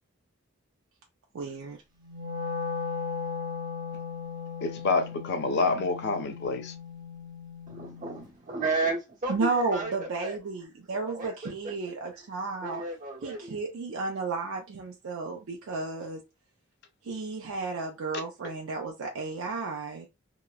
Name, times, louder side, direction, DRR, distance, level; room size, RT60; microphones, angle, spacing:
voice 1, 1.3-1.8 9.3-12.8 13.2-16.2 17.0-20.1, right 3 dB, 75° right, 0.4 m, -33 dB
Wind instrument woodwind instrument, 2.0-8.2, left 5 dB, 20° right, 0.7 m, -37 dB
voice 2, 4.6-6.7, left 3 dB, 55° left, 0.5 m, -27 dB
voice 3, 7.7-10.4 10.9-11.5 12.6-13.5, right 3 dB, 40° right, 1.0 m, -33 dB
2.8 x 2.0 x 2.3 m
head